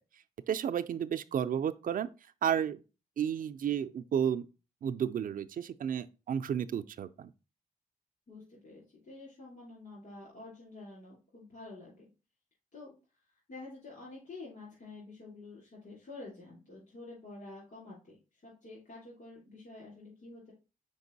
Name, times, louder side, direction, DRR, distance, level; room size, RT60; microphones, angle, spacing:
voice 1, 0.5-2.1 2.4-2.8 3.2-4.5 4.8-7.3, right 8 dB, 70° right, 0.4 m, -32 dB
voice 2, 8.3-12.0 12.7-12.9 13.5-20.5, left 2 dB, 60° left, 3.4 m, -49 dB
5.2 x 4.5 x 4.0 m
wide cardioid pair, 115°, 15 cm